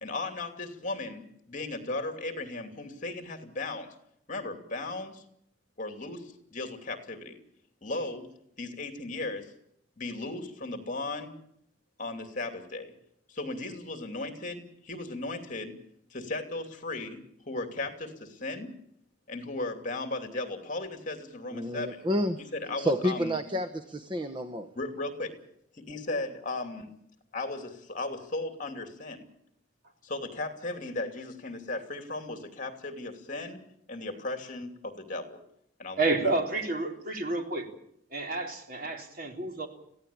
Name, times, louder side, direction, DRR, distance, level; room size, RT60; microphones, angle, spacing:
voice 1, 0.0-3.9 4.3-5.2 5.8-7.4 7.8-8.3 8.6-9.5 10.0-11.3 12.0-12.9 13.3-15.8 16.1-18.7 19.3-22.0 22.5-23.3 24.7-25.3 25.8-26.9 27.3-29.3 30.0-33.6 33.9-35.4 35.8-36.1, left 2 dB, 45° left, 5 dB, 2.8 m, -36 dB
voice 2, 21.5-22.4 22.8-24.7, equal, 25° right, 8 dB, 1.0 m, -29 dB
voice 3, 36.0-37.7 38.1-39.7, right 2 dB, 50° right, 2 dB, 3.8 m, -30 dB
23.0 x 16.0 x 8.6 m, 0.74 s
head